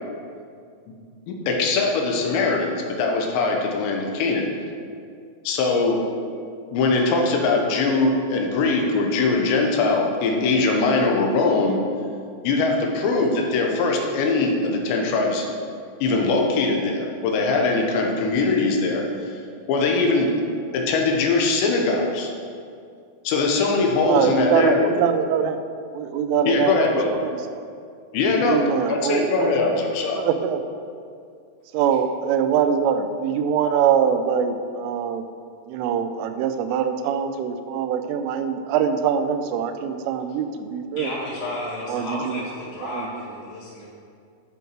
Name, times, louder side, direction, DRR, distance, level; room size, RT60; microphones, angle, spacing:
voice 1, 1.3-4.5 5.4-6.0 6.7-11.8 12.4-15.5 16.0-19.4 19.7-20.3 20.7-22.3 23.2-24.9 26.5-27.1 28.1-28.6 28.9-30.2, left 3 dB, 75° left, 1 dB, 2.9 m, -21 dB
voice 2, 24.0-25.6 25.9-27.7 28.5-29.5 30.2-30.6 31.7-35.2 35.7-41.1 41.9-42.4 42.8-43.2, right 7 dB, 85° right, 8 dB, 3.1 m, -23 dB
voice 3, 41.0-43.9, left 1 dB, 55° left, -8 dB, 4.3 m, -32 dB
13.0 x 6.1 x 4.6 m, 2.3 s
omnidirectional pair, 5.7 m